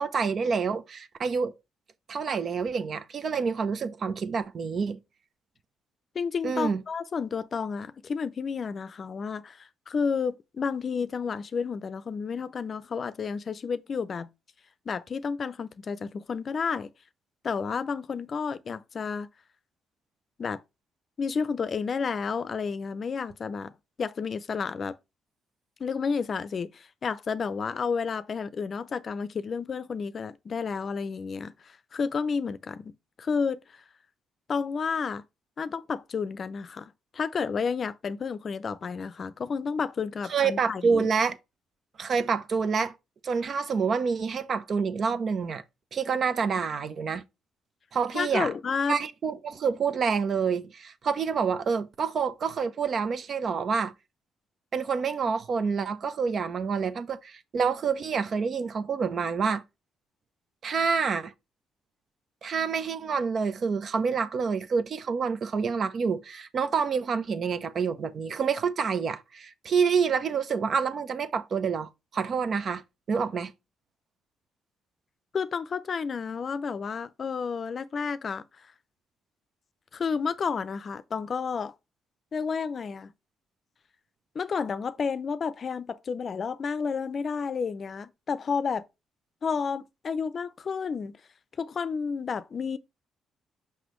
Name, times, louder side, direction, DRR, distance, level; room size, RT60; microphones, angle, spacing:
voice 1, 0.0-1.5 2.1-5.0 6.4-6.8 40.3-41.4 42.0-42.9 43.2-45.6 45.9-47.2 47.9-48.5 48.9-53.9 54.7-59.6 60.6-61.3 62.4-72.8 73.1-73.5, right 5 dB, 50° right, 0.7 m, -27 dB
voice 2, 6.1-14.3 14.9-16.9 17.4-19.3 20.4-20.6 21.2-23.7 24.0-25.0 25.8-32.9 33.2-33.6 34.5-35.2 35.6-41.1 48.1-49.0 75.3-78.4 79.9-81.7 82.3-83.1 84.3-88.8 89.4-91.2 91.6-92.8, left 5 dB, 45° left, 0.5 m, -31 dB
6.0 x 5.4 x 3.1 m
cardioid pair, 90°, 0 cm